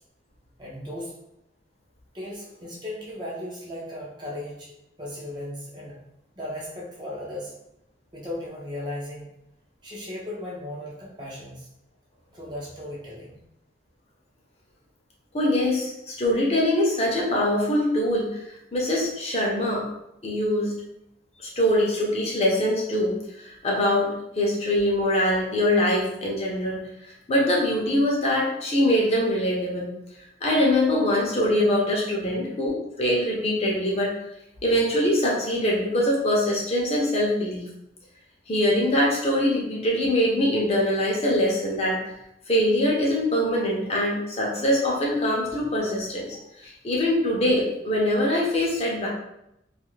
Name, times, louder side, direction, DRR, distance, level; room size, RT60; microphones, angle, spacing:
voice 1, 0.6-1.1 2.1-6.0 6.4-7.5 8.1-9.3 9.8-11.7 12.3-13.4, left 1 dB, 25° right, -4 dB, 0.6 m, -36 dB
voice 2, 15.3-18.4 18.7-19.8 20.2-20.7 21.4-29.9 30.4-34.1 34.6-37.7 38.5-42.1 42.5-49.1, left 1 dB, 35° left, -3 dB, 0.6 m, -23 dB
2.6 x 2.4 x 3.1 m, 0.84 s
head